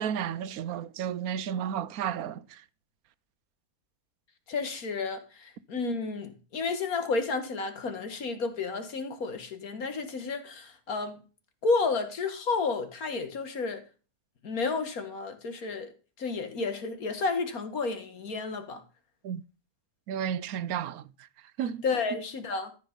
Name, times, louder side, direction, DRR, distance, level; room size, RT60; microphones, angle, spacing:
voice 1, 0.0-2.4 19.2-19.4 20.1-21.0 21.6-21.8, right 9 dB, 80° right, 1.1 m, -32 dB
voice 2, 4.5-11.2 11.6-13.8 14.4-15.9 16.2-18.8 21.8-22.7, left 4 dB, 80° left, 2.1 m, -31 dB
13.5 x 5.4 x 5.2 m
omnidirectional pair, 1.5 m